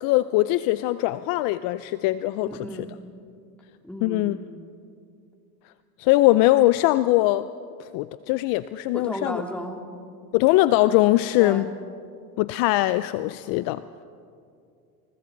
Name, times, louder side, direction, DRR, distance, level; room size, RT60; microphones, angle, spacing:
voice 1, 0.0-2.5 4.0-4.4 6.0-7.5 7.8-9.4 10.3-11.6 12.4-13.8, left 17 dB, 45° left, 14 dB, 0.6 m, -21 dB
voice 2, 2.4-2.9 3.8-4.3 8.9-9.8 11.4-11.7, equal, 5° left, 2 dB, 3.0 m, -34 dB
28.5 x 28.0 x 4.0 m, 2.4 s
hypercardioid pair, 105°, 47 cm